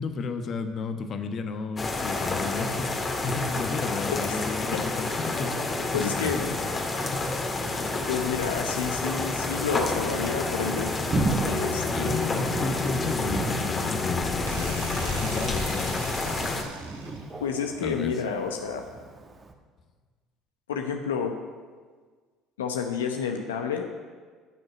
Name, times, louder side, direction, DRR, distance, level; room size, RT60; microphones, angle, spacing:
voice 1, 0.0-6.3 6.9-7.3 11.9-16.7 17.1-17.2 17.8-18.1, left 4 dB, 50° left, 7 dB, 1.1 m, -33 dB
sound 1, 1.8-16.6, left 3 dB, 30° left, 2.0 m, -29 dB
voice 2, 4.1-4.9 5.9-6.4 8.1-11.0 11.4-12.3 17.4-18.8 20.7-21.3 22.6-23.9, left 6 dB, 85° left, 4 dB, 0.8 m, -30 dB
Thunder, 8.6-19.5, right 3 dB, 30° right, 1.4 m, -36 dB
sound 2, 14.5-17.4, right 5 dB, 85° right, 1.1 m, -41 dB
13.5 x 6.5 x 7.5 m, 1.5 s
hypercardioid pair, 60°, 0 cm